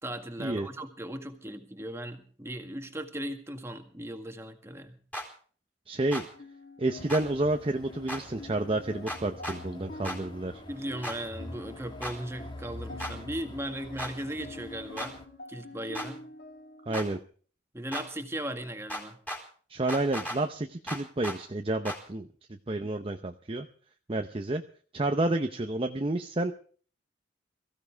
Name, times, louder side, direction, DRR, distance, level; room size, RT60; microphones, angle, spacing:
voice 1, 0.0-5.0 10.7-15.2 15.5-16.2 17.7-19.2, right 1 dB, 15° right, 6 dB, 1.8 m, -37 dB
sound 1, 5.1-5.3 6.1-6.3 7.1-7.2 8.1-8.2 9.1-9.6 10.0-10.2 11.0-11.2 12.0-12.2 13.0-13.1 14.0-14.1 15.0-15.1 15.9-16.1 16.9-17.1 17.9-18.1 18.9-19.4 19.9-20.4 20.9-21.4 21.8-22.0, equal, 10° left, 4.1 m, -35 dB
voice 2, 5.9-6.3 6.8-10.6 16.9-17.2 19.7-22.3 22.7-23.7 24.1-24.6 24.9-26.5, right 2 dB, 30° right, 6 dB, 0.7 m, -30 dB
sound 2, 6.3-17.2, left 2 dB, 65° left, 1.8 m, -48 dB
sound 3, 7.0-15.3, left 1 dB, 25° left, 2.1 m, -46 dB
22.5 x 15.0 x 3.5 m, 0.43 s
head